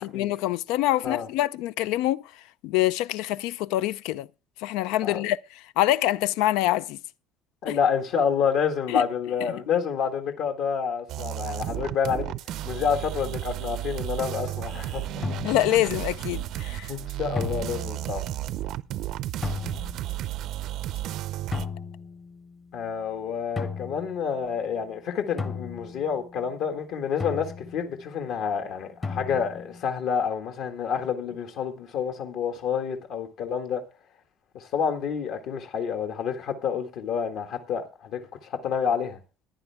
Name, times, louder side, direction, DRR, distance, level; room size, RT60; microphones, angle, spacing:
voice 1, 0.0-2.2 2.6-4.3 4.6-5.4 5.8-7.0 7.7-7.8 8.9-9.0 15.4-16.9, left 15 dB, 80° left, 0.5 m, -25 dB
voice 2, 7.6-12.3 12.6-15.3 16.9-18.2 22.7-33.8 34.5-39.2, left 7 dB, 60° left, 1.7 m, -28 dB
sound 1, 11.1-21.7, right 14 dB, 55° right, 0.6 m, -33 dB
sound 2, 14.5-14.7 15.2-16.1 17.4-18.3 19.4-20.2 21.5-22.8 23.6-24.7 25.4-26.6 27.2-28.2 29.0-29.8, left 4 dB, 20° left, 1.0 m, -35 dB
15.0 x 10.5 x 3.5 m
cardioid pair, 155°, 0 cm